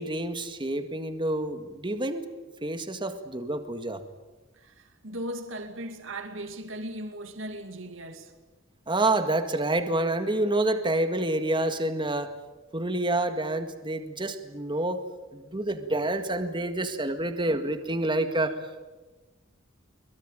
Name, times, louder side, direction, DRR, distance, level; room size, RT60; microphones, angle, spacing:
voice 1, 0.0-2.3 2.6-4.0 8.9-12.3 12.7-15.0 15.3-18.5, right 2 dB, 25° right, 1.9 m, -28 dB
voice 2, 4.6-8.3, right 1 dB, 65° right, 2.4 m, -38 dB
24.0 x 21.5 x 9.1 m
head